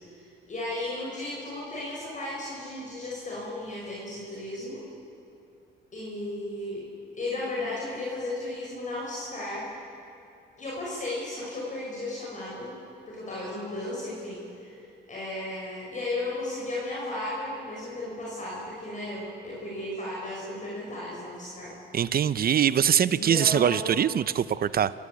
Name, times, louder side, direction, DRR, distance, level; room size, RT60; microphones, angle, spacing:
voice 1, 0.1-4.8 5.9-6.9 7.1-9.7 10.6-12.8 13.1-21.8 23.0-24.0, left 2 dB, 40° left, -4 dB, 6.3 m, -35 dB
voice 2, 21.9-24.9, right 9 dB, 50° right, 16 dB, 0.7 m, -23 dB
27.0 x 16.5 x 8.5 m, 2.7 s
cardioid pair, 90°, 20 cm